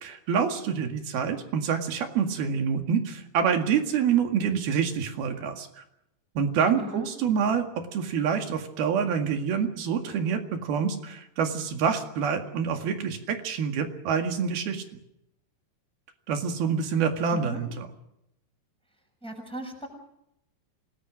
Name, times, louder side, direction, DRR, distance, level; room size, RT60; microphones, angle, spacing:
voice 1, 0.0-5.8 6.4-14.8 16.3-17.9, right 6 dB, 70° right, 5 dB, 3.8 m, -27 dB
voice 2, 6.8-7.1 17.3-17.7 19.2-19.9, equal, ahead, 2 dB, 6.1 m, -37 dB
28.0 x 19.5 x 6.3 m, 0.81 s
omnidirectional pair, 4.7 m